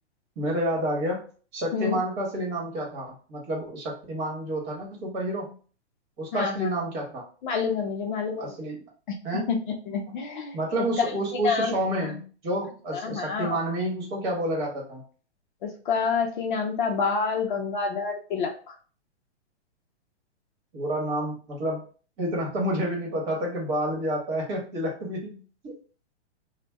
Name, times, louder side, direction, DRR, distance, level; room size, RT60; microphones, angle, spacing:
voice 1, 0.4-1.2 1.5-5.6 6.2-7.2 8.4-8.8 9.2-9.5 10.5-15.0 20.7-21.8 22.2-25.8, right 1 dB, 35° right, -1 dB, 1.2 m, -29 dB
voice 2, 6.3-6.7 7.4-8.5 9.5-9.6 9.9-10.6 11.4-11.7 12.9-13.6 15.6-18.5, left 5 dB, 45° left, 3 dB, 0.5 m, -27 dB
2.5 x 2.1 x 3.3 m, 0.40 s
hypercardioid pair, 150°, 35 cm